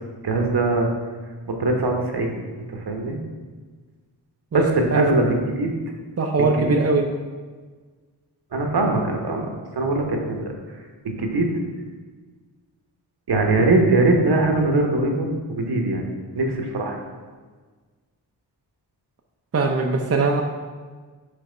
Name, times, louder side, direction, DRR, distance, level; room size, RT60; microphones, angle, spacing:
voice 1, 0.2-0.9 1.5-2.3 2.7-3.2 4.5-5.7 6.7-6.8 8.5-9.5 9.8-10.5 11.0-11.5 13.3-16.0 16.3-17.0, right 2 dB, 65° right, 2 dB, 1.0 m, -21 dB
voice 2, 4.5-5.1 6.2-7.1 19.5-20.4, right 3 dB, 35° right, 2 dB, 0.6 m, -21 dB
5.4 x 3.5 x 5.0 m, 1.4 s
cardioid pair, 45°, 43 cm